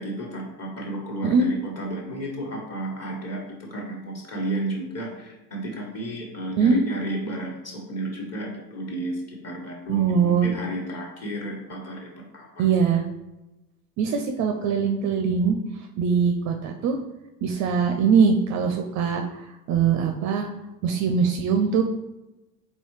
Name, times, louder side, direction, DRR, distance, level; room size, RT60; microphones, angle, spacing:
voice 1, 0.0-12.6, right 1 dB, 30° left, 0 dB, 1.3 m, -32 dB
voice 2, 6.5-6.8 9.9-10.5 12.6-13.0 14.0-15.6 16.0-17.0 17.4-19.2 19.7-20.5 20.8-21.8, right 6 dB, 40° right, 4 dB, 0.4 m, -22 dB
3.9 x 3.7 x 3.1 m, 0.98 s
hypercardioid pair, 70°, 48 cm